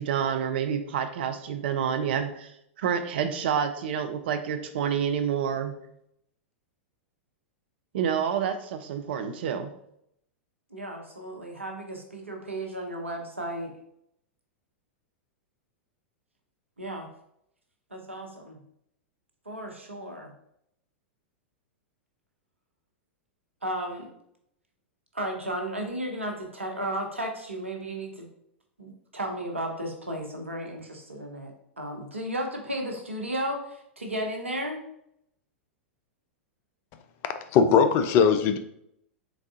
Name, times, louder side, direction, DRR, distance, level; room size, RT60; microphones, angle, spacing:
voice 1, 0.0-2.5 2.8-5.7 7.9-9.7, right 8 dB, 55° right, 8 dB, 0.5 m, -28 dB
voice 2, 10.7-13.7 16.8-17.1 17.9-18.6 19.5-20.3 23.6-24.1 25.1-28.3 28.8-34.8, right 1 dB, 85° right, 3 dB, 0.8 m, -34 dB
voice 3, 37.5-38.6, left 6 dB, 35° left, 9 dB, 0.4 m, -19 dB
4.1 x 3.5 x 2.4 m, 0.74 s
figure-of-eight pair, 95°, 7 cm